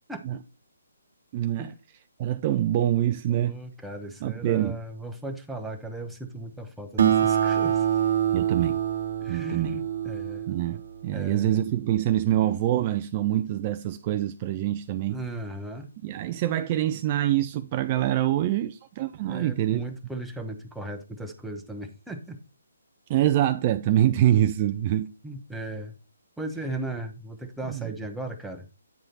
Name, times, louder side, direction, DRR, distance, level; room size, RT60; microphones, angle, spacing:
voice 1, 1.3-1.7 2.2-3.5 4.2-4.8 8.3-8.8 9.3-9.8 10.5-15.2 16.0-19.8 23.1-25.1 27.7-27.9, right 12 dB, 30° right, 0.4 m, -25 dB
voice 2, 3.3-7.9 9.2-10.5 11.1-11.6 15.1-15.9 19.3-22.4 25.2-26.0 26.4-28.7, right 1 dB, ahead, 1.0 m, -37 dB
Acoustic guitar, 7.0-11.8, right 10 dB, 55° right, 1.0 m, -26 dB
9.1 x 4.8 x 4.0 m
figure-of-eight pair, 145°, 0 cm